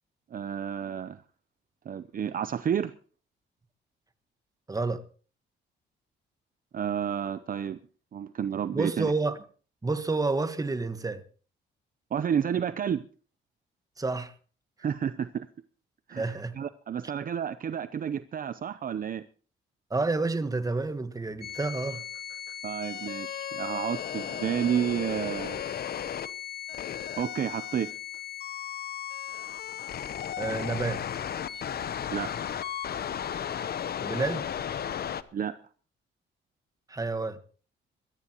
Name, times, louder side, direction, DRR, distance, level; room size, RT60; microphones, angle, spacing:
voice 1, 0.3-1.2 1.9-2.9 6.7-7.8 8.1-9.1 12.1-13.0 14.8-15.5 16.1-19.2 22.6-25.6 27.2-27.9 32.1-32.3 35.3-35.6, right 8 dB, 45° right, 0.7 m, -31 dB
voice 2, 4.7-5.0 8.7-9.4 9.8-11.2 14.0-14.3 16.2-16.5 19.9-22.0 30.4-31.0 34.0-34.4 36.9-37.4, right 3 dB, 15° right, 1.4 m, -29 dB
sound 1, 21.4-35.2, left 9 dB, 50° left, 0.8 m, -35 dB
22.0 x 14.0 x 3.0 m
cardioid pair, 90°, 20 cm